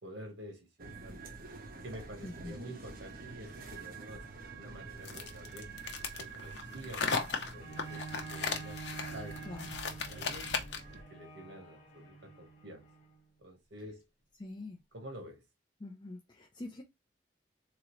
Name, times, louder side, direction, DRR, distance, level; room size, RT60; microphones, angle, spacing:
voice 1, 0.0-1.4 1.8-5.7 6.2-9.4 9.8-10.5 11.1-12.9 13.4-14.1 14.9-15.4, right 1 dB, 75° right, 1.2 m, -49 dB
sound 1, 0.8-11.0, right 4 dB, 55° right, 0.8 m, -47 dB
voice 2, 2.2-2.6 9.4-9.8 14.4-14.8 15.8-16.8, left 2 dB, 25° left, 0.5 m, -44 dB
sound 2, 5.0-10.9, left 5 dB, 65° left, 0.8 m, -36 dB
Bowed string instrument, 7.6-13.2 13.9-14.0, right 4 dB, 45° left, 1.5 m, -48 dB
3.8 x 2.9 x 3.1 m
head